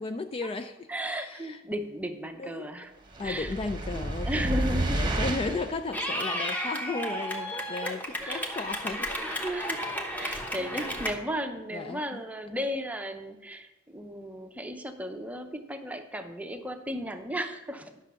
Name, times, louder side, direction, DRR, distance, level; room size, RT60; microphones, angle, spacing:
voice 1, 0.0-0.9 1.2-1.6 2.4-2.7 3.2-9.4 10.6-10.9 11.7-12.2, left 3 dB, 25° left, 8 dB, 0.3 m, -35 dB
voice 2, 0.9-2.9 3.2-3.5 3.9-5.1 5.5-5.6 7.5-8.5 9.3-18.0, equal, 5° right, 6 dB, 0.7 m, -35 dB
sound 1, 3.1-5.8, right 1 dB, 25° right, 1.0 m, -30 dB
Clapping / Cheering, 5.9-11.1, equal, 10° left, 1.1 m, -33 dB
11.0 x 6.2 x 5.6 m, 0.99 s
head